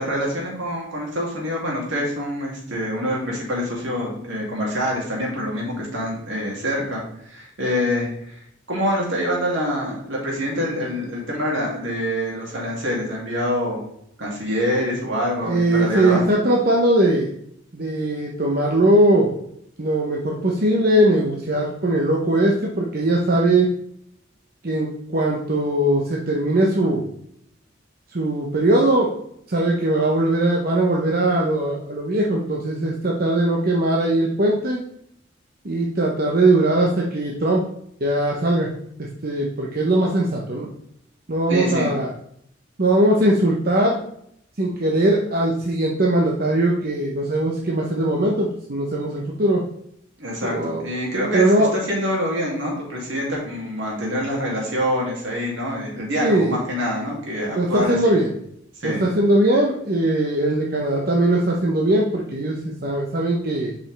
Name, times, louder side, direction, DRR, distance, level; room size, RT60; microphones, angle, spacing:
voice 1, 0.0-7.0 7.3-8.4 8.7-13.8 14.2-16.3 41.5-41.9 50.2-58.1 58.8-59.0, equal, 75° right, -2 dB, 2.6 m, -25 dB
voice 2, 15.4-17.3 17.7-19.4 19.8-23.7 24.6-27.1 28.1-29.1 29.5-34.8 35.6-37.6 38.0-38.7 39.2-40.7 41.3-42.1 42.8-44.0 44.6-49.6 50.4-50.8 51.3-51.7 56.2-56.6 57.6-58.3 58.8-63.7, right 1 dB, 50° right, -2 dB, 0.9 m, -20 dB
7.1 x 5.3 x 3.4 m, 0.71 s
head